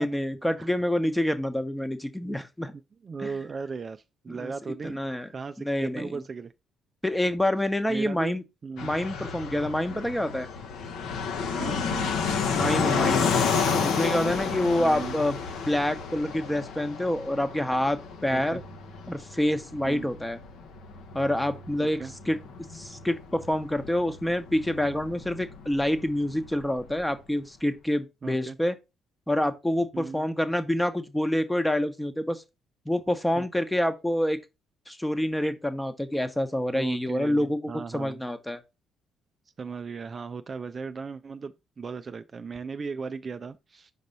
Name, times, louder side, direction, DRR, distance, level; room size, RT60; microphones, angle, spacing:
voice 1, 0.0-2.7 3.2-3.3 4.3-4.5 4.8-5.3 5.6-6.2 7.0-8.4 8.8-10.5 12.5-13.3 13.8-15.4 15.7-18.6 19.1-20.4 21.1-22.0 22.3-22.4 22.7-28.7 29.3-32.4 32.9-34.4 34.9-38.6, left 1 dB, 5° left, 1.0 m, -27 dB
voice 2, 2.7-5.0 5.3-6.5 7.9-8.4 8.6-8.9 9.9-10.0 11.5-12.1 14.8-15.2 18.3-18.6 19.8-20.1 21.8-22.1 28.2-28.6 29.9-30.3 33.4-33.5 36.7-38.2 39.6-43.9, right 5 dB, 40° right, 0.4 m, -37 dB
Fixed-wing aircraft airplane, 8.8-27.1, left 5 dB, 65° left, 0.9 m, -31 dB
5.2 x 4.0 x 5.3 m
hypercardioid pair, 50°, 0 cm